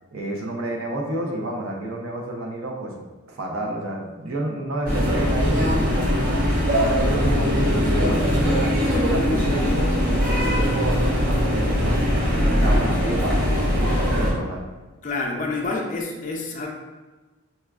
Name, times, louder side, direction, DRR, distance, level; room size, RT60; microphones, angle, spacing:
voice 1, 0.1-3.0 3.3-6.4 6.9-12.0 12.5-14.6, right 1 dB, 85° right, 0 dB, 0.6 m, -30 dB
sound 1, 4.9-14.3, equal, 45° right, 0.8 m, -21 dB
voice 2, 15.0-16.7, left 3 dB, 35° left, -1 dB, 0.4 m, -28 dB
4.2 x 2.3 x 2.3 m, 1.2 s
head